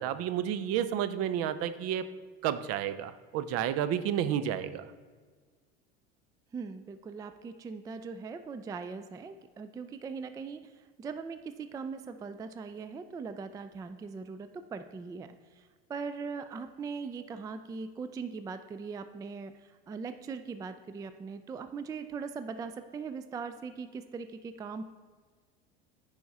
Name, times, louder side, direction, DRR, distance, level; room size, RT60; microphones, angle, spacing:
voice 1, 0.0-2.1 2.4-4.9, right 10 dB, 50° right, 13 dB, 0.6 m, -31 dB
voice 2, 6.5-24.8, right 5 dB, 10° right, 10 dB, 0.3 m, -40 dB
10.0 x 4.8 x 4.1 m, 1.5 s
supercardioid pair, 105°, 30 cm